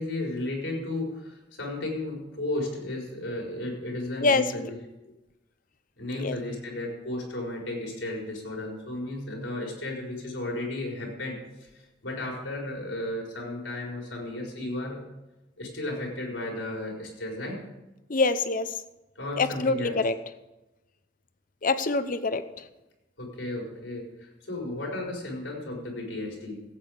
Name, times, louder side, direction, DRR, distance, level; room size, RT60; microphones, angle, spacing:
voice 1, 0.0-4.8 6.0-15.0 15.6-17.6 19.1-19.9 23.2-26.6, left 1 dB, 85° left, -1 dB, 4.5 m, -34 dB
voice 2, 4.2-4.7 6.1-6.4 18.1-18.7 19.4-20.1 21.6-22.4, left 3 dB, 45° left, 12 dB, 0.7 m, -25 dB
16.0 x 8.7 x 5.0 m, 1.0 s
head